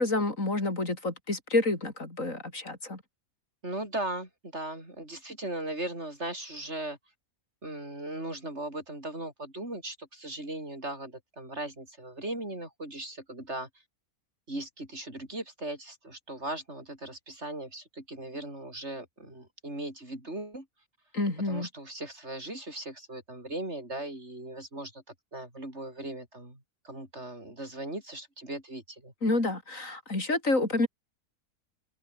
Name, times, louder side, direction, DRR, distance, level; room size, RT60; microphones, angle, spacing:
voice 1, 0.0-3.0 21.1-21.7 29.2-30.9, left 2 dB, 60° left, 5.6 m, -28 dB
voice 2, 3.6-7.0 7.6-13.7 14.5-20.7 21.4-25.0 25.3-29.1, right 1 dB, 45° right, 8.3 m, -38 dB
omnidirectional pair, 1.6 m